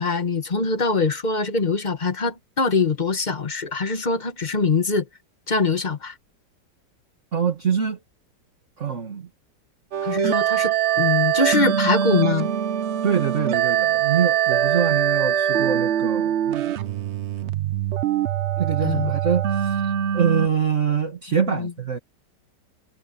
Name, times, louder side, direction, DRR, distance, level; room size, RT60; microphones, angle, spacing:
voice 1, 0.0-5.1 5.5-6.1 10.0-12.5 17.5-17.6 18.8-19.1 21.4-21.7, left 4 dB, 25° left, 1.3 m, -23 dB
voice 2, 7.3-8.0 8.8-9.3 13.0-16.7 18.6-22.0, right 7 dB, 40° right, 2.0 m, -24 dB
sound 1, 9.9-20.5, right 10 dB, 75° right, 0.6 m, -23 dB
omnidirectional pair, 2.0 m